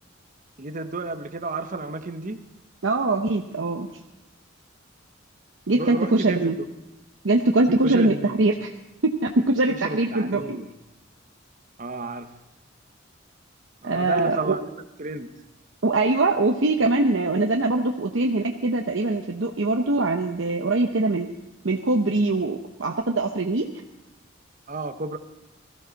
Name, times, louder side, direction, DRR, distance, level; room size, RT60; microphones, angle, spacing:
voice 1, 0.6-2.4 5.7-6.5 7.7-8.4 9.7-10.7 11.8-12.3 13.8-15.3 24.7-25.2, right 2 dB, 40° right, 8 dB, 1.0 m, -32 dB
voice 2, 2.8-3.9 5.7-6.5 7.2-8.7 9.0-10.6 13.8-14.6 15.8-21.3 21.6-23.7, right 2 dB, 70° right, 2 dB, 0.9 m, -22 dB
20.5 x 14.5 x 4.1 m, 0.96 s
head